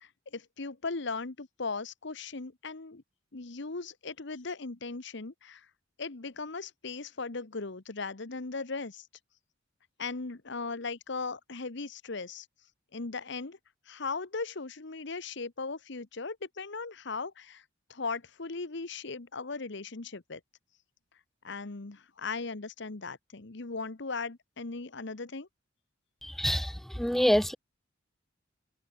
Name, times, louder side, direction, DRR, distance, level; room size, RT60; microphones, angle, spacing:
voice 1, 0.0-3.0 3.3-5.7 6.0-9.1 10.0-12.5 12.9-13.6 13.9-17.6 17.9-20.4 21.4-25.5, left 4 dB, 60° left, 1.1 m, -38 dB
voice 2, 26.2-27.6, equal, ahead, 0.3 m, -27 dB
head